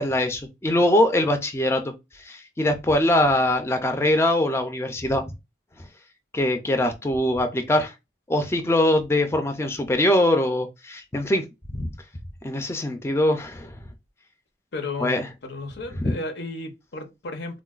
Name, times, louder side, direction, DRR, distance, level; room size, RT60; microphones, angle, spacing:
voice 1, 0.0-1.9 2.2-5.2 6.3-7.9 8.3-11.4 11.7-11.9 12.4-13.8 15.0-15.3 16.0-16.1, left 1 dB, 15° left, 0.3 m, -22 dB
voice 2, 14.7-17.6, left 2 dB, 90° left, 0.7 m, -34 dB
3.8 x 2.1 x 2.3 m
head